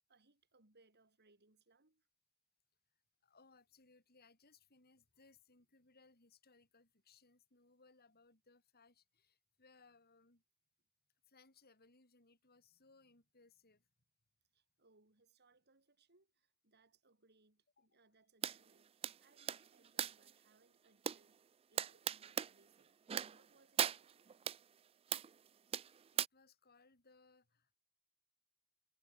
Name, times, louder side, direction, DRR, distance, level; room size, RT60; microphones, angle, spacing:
voice 1, 0.0-2.0 14.5-21.4 21.7-24.4, right 3 dB, 50° right, 4.2 m, -72 dB
voice 2, 3.2-10.4 11.3-13.8 17.8-18.0 26.1-27.8, left 4 dB, 45° left, 4.7 m, -68 dB
sound 1, 18.4-18.6 19.0-20.3 21.1-21.2 21.8-22.5 23.1-23.5 23.8-24.6 25.1-25.3 25.7-26.3, right 9 dB, 25° right, 0.3 m, -38 dB
head